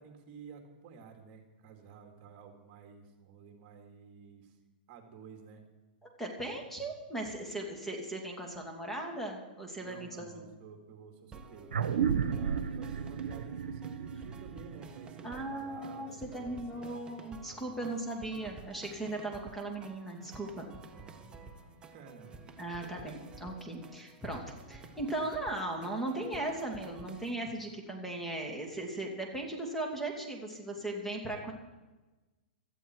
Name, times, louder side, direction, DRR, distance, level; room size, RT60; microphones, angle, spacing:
voice 1, 0.0-4.6 4.9-5.6 9.8-17.0 17.4-17.9 20.7-22.5, right 5 dB, 40° right, 4 dB, 2.6 m, -52 dB
voice 2, 6.0-10.5 15.2-20.7 22.6-24.4 24.7-31.5, right 2 dB, 5° left, 0 dB, 2.7 m, -38 dB
sound 1, 11.3-27.3, right 4 dB, 15° right, 1.3 m, -52 dB
sound 2, 11.7-16.6, right 7 dB, 90° right, 1.0 m, -34 dB
17.5 x 14.0 x 4.8 m, 1.2 s
hypercardioid pair, 140°, 5 cm